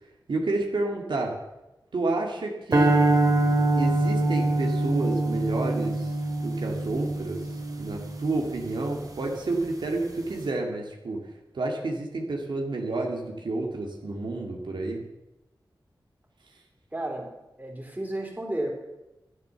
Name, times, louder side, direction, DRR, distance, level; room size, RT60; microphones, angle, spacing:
voice 1, 0.3-1.3 1.9-2.9 3.8-6.1 6.4-7.4 7.8-11.2 11.5-15.0, right 2 dB, 80° right, 0 dB, 2.2 m, -30 dB
sound 1, 2.7-9.1, right 2 dB, 50° right, 2.7 m, -25 dB
voice 2, 16.9-17.3 17.6-18.7, right 1 dB, 20° right, -1 dB, 3.7 m, -32 dB
12.5 x 10.5 x 7.0 m, 0.99 s
wide cardioid pair, 95°, 8 cm